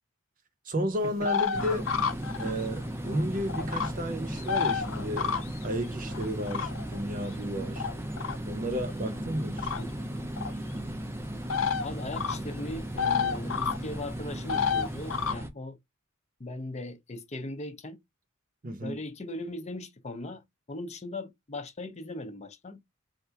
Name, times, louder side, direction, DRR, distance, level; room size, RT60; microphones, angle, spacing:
voice 1, 0.7-1.9 2.4-5.3 5.6-7.8 8.5-9.7 18.6-19.0, equal, 40° right, 0.8 m, -33 dB
sound 1, 1.2-2.8 3.1-3.9 4.3-5.6 6.1-7.0 7.8-8.4 9.6-9.8 10.4-10.5 11.5-11.9 12.1-12.4 12.7-13.8 14.5-15.3, left 6 dB, 75° left, 0.7 m, -30 dB
sound 2, 1.5-15.5, right 1 dB, 10° right, 0.5 m, -36 dB
voice 2, 11.8-15.8 16.4-18.0 18.8-22.8, left 2 dB, 35° left, 0.6 m, -39 dB
3.5 x 2.6 x 4.4 m
head